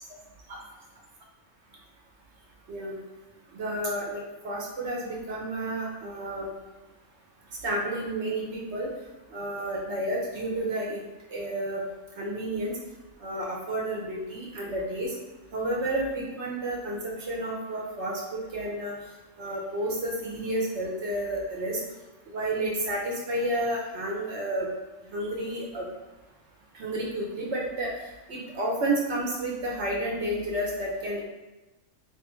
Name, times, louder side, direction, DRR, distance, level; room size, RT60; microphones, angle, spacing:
voice 1, 3.5-6.5 7.6-8.9 9.3-11.0 11.3-11.8 12.2-12.8 13.2-15.1 15.5-18.2 18.5-18.9 19.4-21.8 22.3-24.7 25.1-25.9 26.7-27.9 28.3-31.2, right 1 dB, 65° right, -3 dB, 0.9 m, -31 dB
3.3 x 2.6 x 3.0 m, 1.1 s
omnidirectional pair, 1.3 m